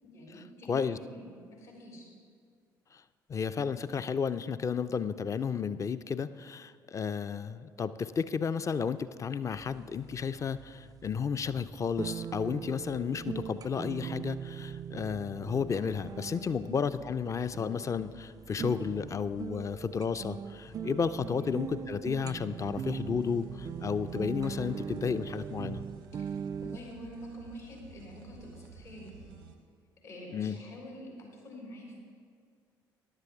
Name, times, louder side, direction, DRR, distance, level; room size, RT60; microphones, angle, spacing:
voice 1, 0.0-2.1 16.5-16.7 21.3-21.5 26.2-26.3 26.6-29.3 30.0-32.0, equal, 70° left, -2 dB, 3.6 m, -46 dB
voice 2, 0.7-1.0 2.9-3.0 3.3-25.8 30.3-30.6, left 6 dB, 30° left, 13 dB, 0.4 m, -32 dB
sound 1, 9.5-26.8, right 7 dB, 35° right, 0.3 m, -41 dB
sound 2, 22.6-29.5, right 6 dB, 90° right, 0.8 m, -52 dB
14.5 x 10.5 x 3.5 m, 2.1 s
figure-of-eight pair, 50°, 11 cm